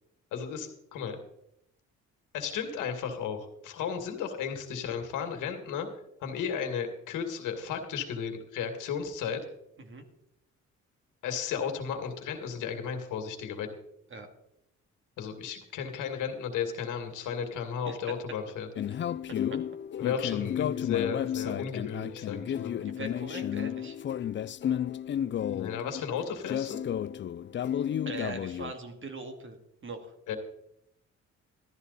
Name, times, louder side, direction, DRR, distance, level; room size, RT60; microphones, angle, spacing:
voice 1, 0.3-1.2 2.3-5.9 6.2-9.4 11.2-13.7 15.2-18.7 20.0-22.8 25.5-26.8 30.3-30.4, left 7 dB, 90° left, 5 dB, 2.3 m, -34 dB
sound 1, 18.8-28.7, left 10 dB, 40° left, 0.4 m, -32 dB
voice 2, 22.8-24.0 28.1-30.1, right 3 dB, 40° right, 5 dB, 2.5 m, -41 dB
14.0 x 12.5 x 4.2 m, 0.79 s
cardioid pair, 90°, 30 cm